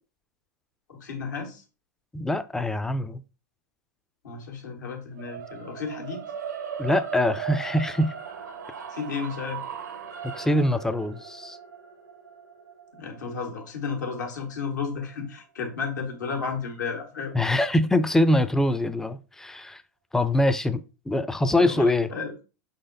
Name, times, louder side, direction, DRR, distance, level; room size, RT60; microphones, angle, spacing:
voice 1, 0.9-1.6 4.2-6.2 8.9-9.6 12.9-17.4 21.6-22.3, left 5 dB, 80° left, 1.4 m, -33 dB
voice 2, 2.1-3.2 6.8-8.1 10.3-11.6 17.3-19.8 20.1-22.1, left 1 dB, 5° left, 0.3 m, -24 dB
sound 1, 5.2-15.3, right 8 dB, 90° right, 0.8 m, -38 dB
4.9 x 4.0 x 2.5 m
hypercardioid pair, 105°, 10 cm